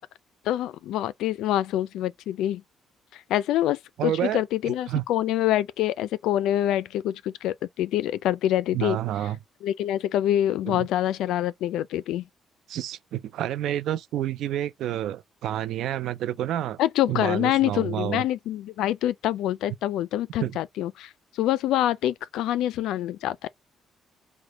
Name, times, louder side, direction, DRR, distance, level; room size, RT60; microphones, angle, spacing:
voice 1, 0.4-2.6 3.1-9.0 9.6-12.2 16.8-23.5, left 12 dB, 90° left, 0.3 m, -26 dB
voice 2, 4.0-5.0 8.7-9.4 10.7-10.9 12.7-16.8 17.1-18.2 20.4-20.6, right 12 dB, 80° right, 0.4 m, -29 dB
4.8 x 2.1 x 3.9 m
cardioid pair, 90°, 0 cm